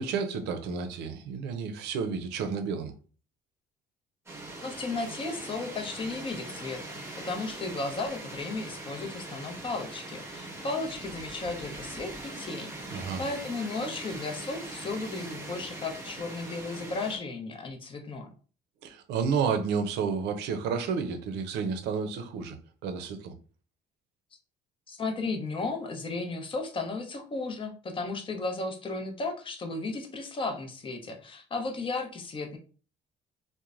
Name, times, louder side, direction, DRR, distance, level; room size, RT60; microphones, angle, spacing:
voice 1, 0.0-2.9 12.9-13.2 18.8-22.6 22.8-23.3, right 6 dB, 85° right, 0.5 m, -31 dB
sound 1, 4.3-17.2, right 2 dB, 15° right, 0.8 m, -41 dB
voice 2, 4.6-7.0 7.2-18.3 24.9-32.6, left 3 dB, 30° left, 0.6 m, -34 dB
3.0 x 2.1 x 2.4 m
cardioid pair, 110°, 17 cm